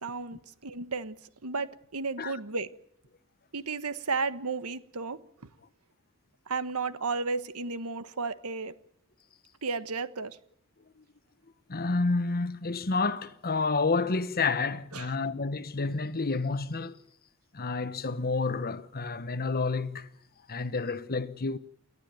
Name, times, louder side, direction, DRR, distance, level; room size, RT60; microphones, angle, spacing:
voice 1, 0.0-1.2 1.4-2.7 3.5-5.2 6.5-8.7 9.6-10.4 14.9-15.1, right 4 dB, 80° right, 1.4 m, -33 dB
voice 2, 11.7-17.0 17.5-20.1 20.5-21.6, left 3 dB, 45° left, 1.1 m, -29 dB
29.0 x 12.5 x 9.2 m
head